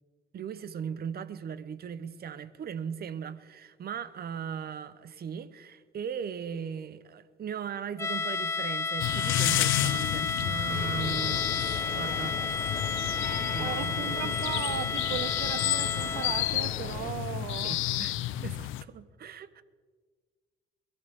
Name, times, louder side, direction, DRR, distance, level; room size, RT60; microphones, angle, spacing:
voice 1, 0.3-11.5 11.9-12.4 13.4-14.3 17.6-19.6, right 7 dB, 50° right, 0.8 m, -38 dB
sound 1, 8.0-16.7, left 4 dB, 15° left, 0.4 m, -32 dB
sound 2, 9.0-18.8, left 14 dB, 85° left, 0.5 m, -31 dB
sound 3, 10.7-17.1, left 6 dB, 45° left, 1.1 m, -40 dB
voice 2, 13.6-17.8, right 12 dB, 85° right, 0.6 m, -37 dB
21.5 x 14.0 x 3.6 m
cardioid pair, 90°, 20 cm